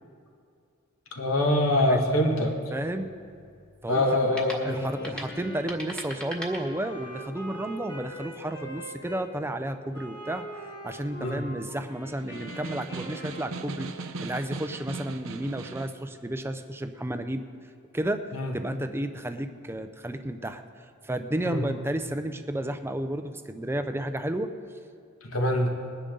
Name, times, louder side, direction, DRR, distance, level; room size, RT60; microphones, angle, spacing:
voice 1, 1.1-2.6 3.9-4.8 11.2-11.4 18.3-18.5 21.5-21.6 25.3-25.7, left 1 dB, 65° left, 1 dB, 1.8 m, -24 dB
sound 1, 1.9-7.3, equal, 5° left, 1.5 m, -43 dB
voice 2, 2.7-3.1 3.8-10.4 10.8-17.5 17.9-18.3 18.5-24.5, right 1 dB, 10° right, 8 dB, 0.5 m, -32 dB
Wind instrument woodwind instrument, 4.6-9.3 9.9-13.9, equal, 20° left, 1.7 m, -42 dB
Snare drum, 12.2-16.0, right 3 dB, 65° right, 0.7 m, -38 dB
20.5 x 10.0 x 3.9 m, 2.4 s
head